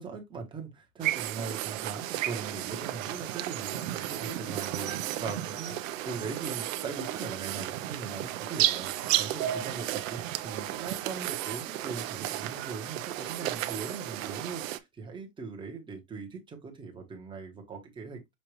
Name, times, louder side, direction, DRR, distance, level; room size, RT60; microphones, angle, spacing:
voice 1, 0.0-18.2, right 4 dB, 10° right, 1.0 m, -40 dB
sound 1, 1.0-14.8, right 14 dB, 65° right, 0.7 m, -33 dB
sound 2, 2.9-13.5, right 7 dB, 90° right, 1.4 m, -44 dB
6.5 x 2.5 x 3.1 m
supercardioid pair, 150°, 42 cm